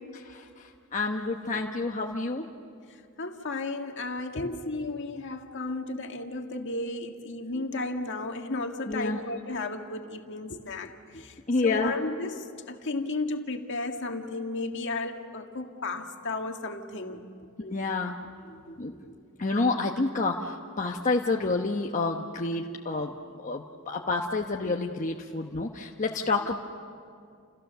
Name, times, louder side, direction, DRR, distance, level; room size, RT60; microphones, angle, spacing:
voice 1, 0.3-2.5 4.3-4.5 7.5-7.6 8.9-9.2 10.5-10.9 11.5-11.9 17.6-18.2 18.4-26.6, left 3 dB, 35° left, 1 dB, 1.0 m, -29 dB
voice 2, 3.2-11.4 11.6-17.3, left 2 dB, 55° left, 4 dB, 1.8 m, -34 dB
30.0 x 29.0 x 6.9 m, 2.4 s
head